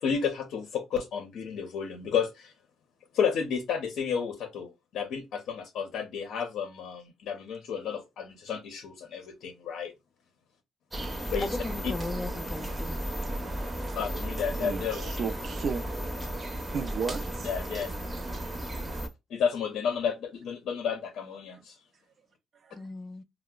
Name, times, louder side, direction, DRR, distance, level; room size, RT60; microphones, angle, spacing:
voice 1, 0.0-2.5 3.1-9.9 11.3-11.5 14.0-15.1 17.4-17.9 18.9-19.0 19.3-21.8, left 7 dB, 75° left, 0.6 m, -31 dB
sound 1, 10.9-19.1, right 1 dB, 25° right, 0.7 m, -34 dB
voice 2, 11.4-13.2 22.7-23.2, left 2 dB, 20° left, 0.3 m, -37 dB
voice 3, 14.5-15.8 16.7-17.5 22.6-22.8, right 5 dB, 55° right, 0.4 m, -34 dB
4.5 x 2.0 x 2.2 m
cardioid pair, 90°, 0 cm